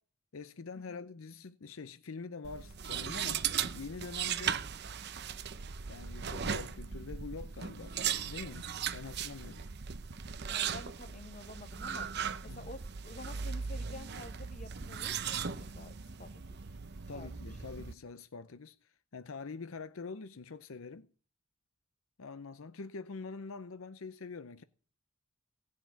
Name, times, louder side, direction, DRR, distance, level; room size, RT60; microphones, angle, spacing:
voice 1, 0.3-3.4 3.7-4.6 5.9-9.7 12.5-12.7 17.1-21.1 22.2-24.6, left 4 dB, 70° left, 0.6 m, -45 dB
sound 1, 2.4-17.9, right 7 dB, 50° right, 0.7 m, -38 dB
voice 2, 10.5-12.1 12.4-16.6 17.1-17.3, left 2 dB, 35° left, 1.3 m, -49 dB
17.0 x 6.5 x 9.2 m
head